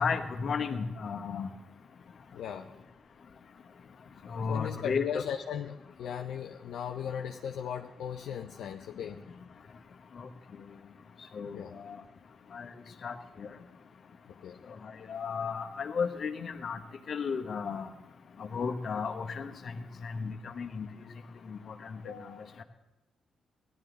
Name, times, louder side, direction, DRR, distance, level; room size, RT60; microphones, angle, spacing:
voice 1, 0.0-1.5 4.3-5.2 10.2-10.3 11.3-11.9 12.5-12.7 13.0-13.5 14.8-16.8 17.1-17.9 18.4-19.5 20.0-20.9 21.5-21.6, left 5 dB, 55° left, 6 dB, 1.2 m, -34 dB
voice 2, 2.3-2.7 4.5-9.2 11.5-11.7 14.3-14.6 22.0-22.4, left 8 dB, 75° left, 4 dB, 0.6 m, -37 dB
16.5 x 11.5 x 4.0 m, 1.0 s
hypercardioid pair, 50°, 0 cm